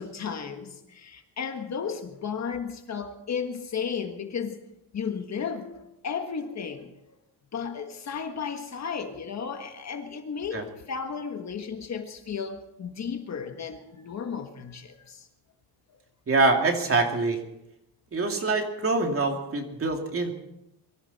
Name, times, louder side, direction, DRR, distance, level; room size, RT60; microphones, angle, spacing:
voice 1, 0.0-4.6 4.9-6.9 7.5-15.3, left 6 dB, 40° left, 1.6 m, -34 dB
voice 2, 16.3-17.4 18.1-20.3, right 3 dB, 30° right, 2.6 m, -24 dB
23.5 x 14.0 x 4.3 m
cardioid pair, 145°, 43 cm